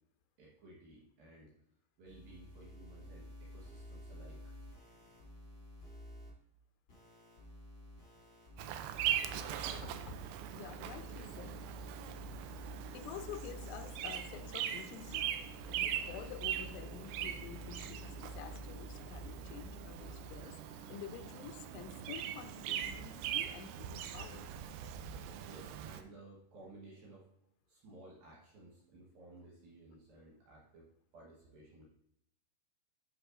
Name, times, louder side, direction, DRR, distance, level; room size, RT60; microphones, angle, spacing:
voice 1, 0.4-1.5 2.0-4.4 25.4-27.3 27.7-31.8, right 2 dB, 65° right, -4 dB, 2.6 m, -56 dB
sound 1, 2.0-6.3 6.9-20.4, equal, 30° left, 1.6 m, -51 dB
Bird vocalization bird call bird song, 8.6-26.0, right 10 dB, 80° right, 2.7 m, -41 dB
voice 2, 9.7-10.2 10.5-11.7 12.9-24.5, left 9 dB, 90° left, 9 dB, 3.0 m, -49 dB
9.7 x 6.0 x 2.5 m, 0.78 s
omnidirectional pair, 5.3 m